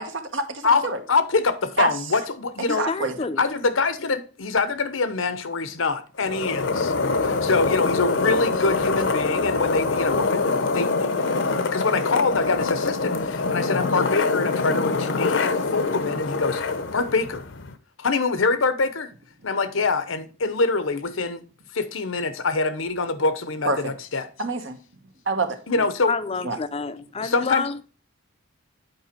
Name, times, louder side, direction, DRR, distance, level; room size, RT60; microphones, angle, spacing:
voice 1, 0.1-1.0 1.8-1.9 2.7-3.2 23.6-23.8 24.4-24.8 25.3-25.6 26.4-26.6, right 3 dB, 70° right, 1.2 m, -26 dB
voice 2, 0.6-2.9 3.4-6.9 7.2-16.6 16.9-17.4 18.0-19.1 19.4-21.4 21.7-24.3 25.7-26.1 27.0-27.6, left 4 dB, 90° left, 0.9 m, -25 dB
voice 3, 2.7-3.4 26.1-27.8, left 4 dB, 30° left, 0.5 m, -28 dB
sound 1, 6.2-17.7, left 3 dB, 65° left, 0.7 m, -24 dB
7.9 x 4.9 x 4.4 m
head